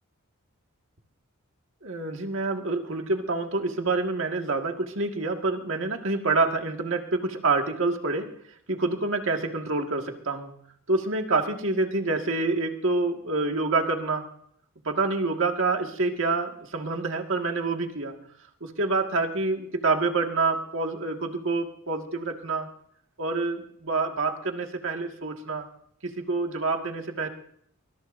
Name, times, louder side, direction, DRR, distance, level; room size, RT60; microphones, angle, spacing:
voice 1, 1.8-8.3 8.7-10.5 10.9-14.2 14.8-18.1 18.6-22.7 23.2-25.7 26.0-27.3, right 3 dB, 65° right, 3 dB, 1.8 m, -27 dB
23.0 x 21.0 x 2.6 m, 0.67 s
head